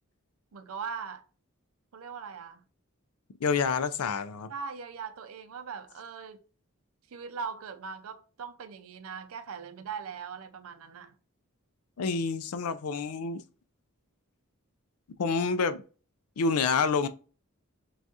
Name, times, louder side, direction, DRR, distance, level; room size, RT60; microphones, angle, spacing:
voice 1, 0.5-1.2 1.9-2.6 4.5-6.4 7.1-11.2, right 6 dB, 75° right, 0.5 m, -40 dB
voice 2, 3.4-4.5 12.0-13.4 15.2-15.8 16.4-17.1, left 5 dB, 90° left, 0.4 m, -28 dB
6.0 x 2.3 x 2.7 m
head